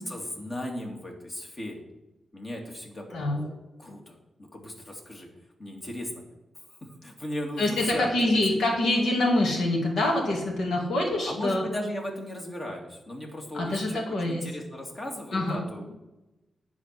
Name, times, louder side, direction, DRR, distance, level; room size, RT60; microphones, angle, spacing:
voice 1, 0.1-1.9 2.3-5.3 5.6-6.1 7.0-8.7 11.3-15.9, left 1 dB, 35° left, 1 dB, 2.4 m, -37 dB
voice 2, 7.6-11.6 13.5-14.4 15.3-15.6, left 1 dB, 90° left, -1 dB, 2.6 m, -25 dB
10.5 x 4.7 x 7.6 m, 1.0 s
cardioid pair, 90°, 0 cm